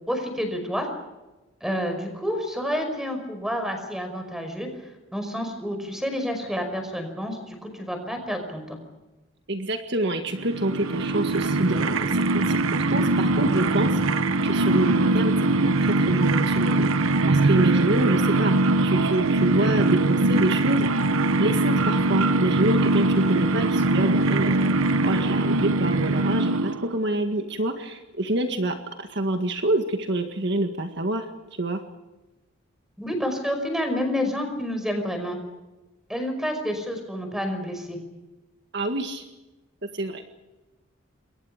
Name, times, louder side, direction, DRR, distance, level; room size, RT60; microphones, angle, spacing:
voice 1, 0.1-0.9 1.6-4.7 5.1-8.8 33.0-35.4 36.1-38.0, equal, ahead, 6 dB, 5.4 m, -29 dB
voice 2, 9.5-16.9 17.3-18.6 18.8-20.9 21.3-24.8 25.0-31.3 31.6-31.8 38.7-39.2 39.9-40.2, right 1 dB, 55° right, 5 dB, 1.8 m, -27 dB
sound 1, 10.3-27.0, right 2 dB, 80° right, 1.0 m, -22 dB
28.5 x 23.0 x 5.1 m, 1.1 s
head